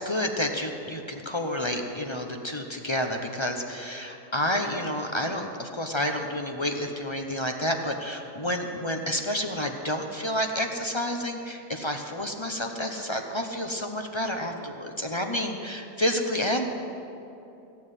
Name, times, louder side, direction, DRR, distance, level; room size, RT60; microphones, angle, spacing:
voice 1, 0.0-16.7, left 1 dB, 25° left, 3 dB, 0.6 m, -29 dB
16.5 x 7.1 x 9.8 m, 2.8 s
omnidirectional pair, 1.8 m